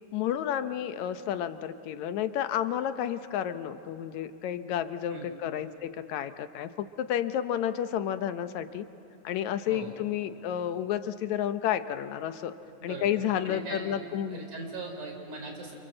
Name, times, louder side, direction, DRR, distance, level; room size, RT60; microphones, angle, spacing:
voice 1, 0.1-8.9 9.2-12.5 12.8-14.4, left 10 dB, 75° left, 10 dB, 2.1 m, -31 dB
voice 2, 13.4-14.0 14.3-15.7, right 3 dB, 85° right, 3 dB, 5.3 m, -39 dB
28.5 x 27.0 x 7.7 m, 2.6 s
omnidirectional pair, 3.4 m